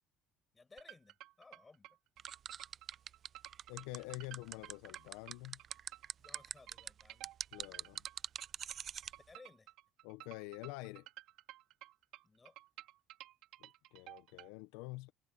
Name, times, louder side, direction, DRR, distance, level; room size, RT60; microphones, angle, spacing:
voice 1, 0.5-2.0 6.2-7.3 9.3-9.7 12.2-12.6, left 3 dB, 25° left, 6.1 m, -60 dB
sound 1, 0.8-14.5, right 16 dB, 70° right, 3.5 m, -54 dB
sound 2, 2.2-9.1, right 8 dB, 45° right, 0.5 m, -43 dB
voice 2, 3.7-5.6 7.5-8.0 10.0-11.1 13.6-15.1, left 21 dB, 80° left, 0.8 m, -47 dB
supercardioid pair, 80°, 0 cm